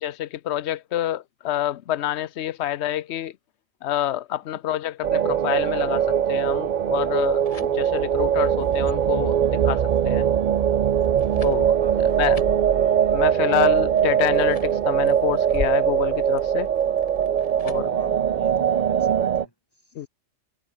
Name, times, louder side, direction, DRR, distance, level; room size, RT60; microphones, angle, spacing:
voice 1, 0.0-3.3 3.8-10.3 11.4-11.7 12.0-12.4 13.1-16.7 17.6-17.8 19.9-20.1, left 12 dB, 70° left, 0.9 m, -27 dB
sound 1, 5.0-19.5, right 9 dB, 50° right, 0.6 m, -21 dB
Open folder and searching papers, 7.3-18.0, left 5 dB, 35° left, 0.9 m, -42 dB
voice 2, 17.8-19.9, equal, 20° left, 7.7 m, -43 dB
omnidirectional pair, 1.2 m